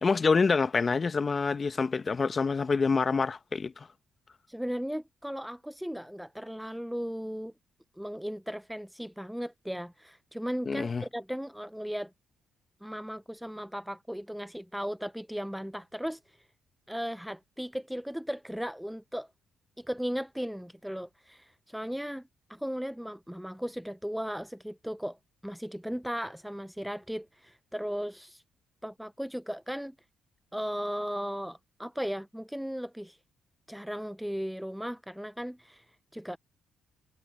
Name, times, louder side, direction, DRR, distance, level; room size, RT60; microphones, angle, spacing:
voice 1, 0.0-3.9 10.7-11.0, left 4 dB, 35° left, 1.0 m, -26 dB
voice 2, 4.5-7.5 8.0-12.1 12.8-16.2 16.9-19.3 19.8-25.2 25.4-28.4 28.8-30.0 30.5-33.2 33.7-35.8 36.1-36.4, equal, ahead, 0.5 m, -36 dB
cardioid pair, 90°, 0 cm